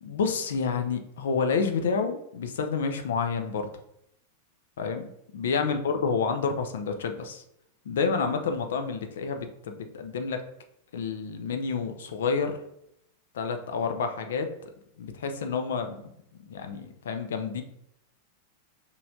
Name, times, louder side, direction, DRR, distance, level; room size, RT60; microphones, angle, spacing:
voice 1, 0.0-3.7 4.8-7.4 7.9-10.4 10.9-12.5 13.3-14.7 15.0-16.0 16.5-17.6, left 5 dB, 60° left, 6 dB, 0.6 m, -29 dB
5.4 x 3.2 x 2.7 m, 0.76 s
figure-of-eight pair, 90°, 0 cm